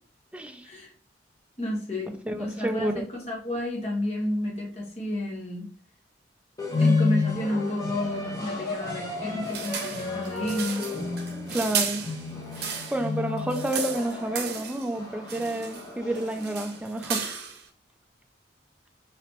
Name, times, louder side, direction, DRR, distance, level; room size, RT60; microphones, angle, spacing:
voice 1, 0.3-0.7 2.3-3.0 11.5-12.0 12.9-17.4, right 1 dB, 5° right, 0.3 m, -30 dB
voice 2, 1.6-5.7 6.8-10.9, left 1 dB, 35° left, 1.2 m, -31 dB
sound 1, 6.6-16.8, left 3 dB, 20° left, 0.9 m, -31 dB
sound 2, 9.4-13.1 13.4-14.9 15.3-15.9 16.2-17.7, right 6 dB, 60° right, 0.7 m, -34 dB
3.3 x 2.9 x 2.9 m
head